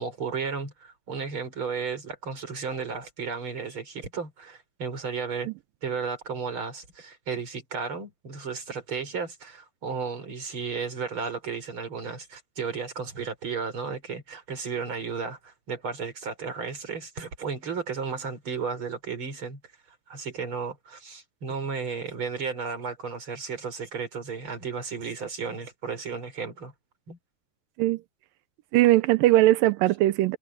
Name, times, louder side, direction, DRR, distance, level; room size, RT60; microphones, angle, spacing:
voice 1, 0.0-5.5 5.8-19.6 19.9-26.7 27.1-27.2, right 5 dB, 30° right, 5.0 m, -34 dB
voice 2, 28.7-30.4, right 16 dB, 90° right, 1.9 m, -20 dB
omnidirectional pair, 5.0 m